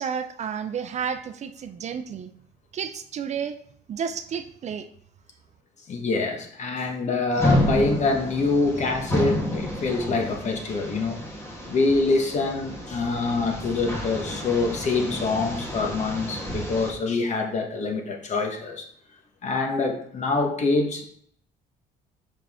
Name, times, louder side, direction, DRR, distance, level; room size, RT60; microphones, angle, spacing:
voice 1, 0.0-2.3 2.7-3.6 3.9-4.9, right 7 dB, 40° right, 9 dB, 0.5 m, -31 dB
voice 2, 5.9-11.2 11.7-18.9 19.4-21.1, left 3 dB, 45° left, 3 dB, 1.2 m, -25 dB
sound 1, 7.3-16.9, left 1 dB, 15° left, 1.5 m, -30 dB
5.6 x 4.8 x 3.5 m, 0.65 s
cardioid pair, 110°, 17 cm